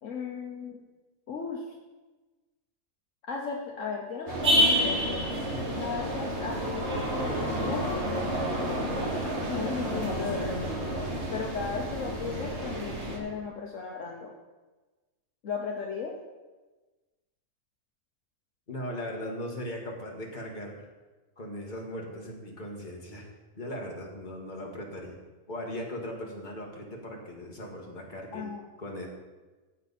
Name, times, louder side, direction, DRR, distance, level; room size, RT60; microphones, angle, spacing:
voice 1, 0.0-0.8 1.3-1.7 3.3-5.2 5.8-8.0 8.8-8.9 9.5-10.5 11.3-14.3 15.4-16.1 28.3-28.6, left 5 dB, 65° left, 0 dB, 1.3 m, -35 dB
sound 1, 4.3-13.2, equal, 50° right, 2.2 m, -29 dB
voice 2, 18.7-20.9 21.4-23.3 23.6-25.2 25.5-28.5 28.8-29.1, left 1 dB, 35° left, -1 dB, 2.0 m, -38 dB
15.0 x 7.4 x 4.2 m, 1.2 s
omnidirectional pair, 1.5 m